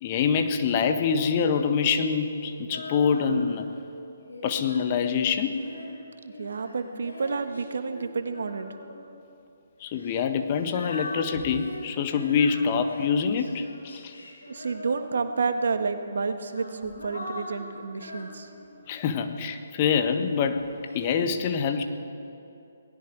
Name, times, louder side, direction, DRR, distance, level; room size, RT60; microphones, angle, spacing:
voice 1, 0.0-3.7 4.4-5.7 9.8-14.1 18.9-21.8, left 6 dB, 35° left, 7 dB, 1.4 m, -25 dB
Female singing, 2.7-3.7 4.3-9.1 9.9-15.4 16.2-19.3 20.0-21.1, left 2 dB, 80° left, 5.4 m, -42 dB
voice 2, 6.2-8.7 14.5-18.5, right 4 dB, 65° right, 7 dB, 1.6 m, -30 dB
28.5 x 19.0 x 4.8 m, 2.8 s
figure-of-eight pair, 135°, 0 cm